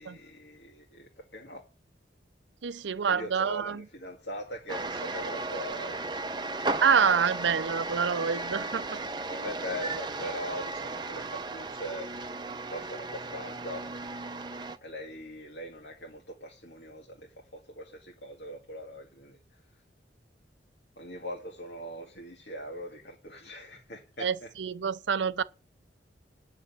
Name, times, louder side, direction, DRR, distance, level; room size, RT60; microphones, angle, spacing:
voice 1, 0.0-1.7 3.0-6.0 9.3-12.1 12.7-13.9 14.8-19.6 21.0-24.5, equal, 70° left, 2.0 m, -41 dB
voice 2, 2.6-3.8 6.8-9.0 24.2-25.4, right 6 dB, 80° right, 0.6 m, -27 dB
sound 1, 4.7-14.8, right 3 dB, 25° right, 0.7 m, -35 dB
9.1 x 6.6 x 8.2 m
head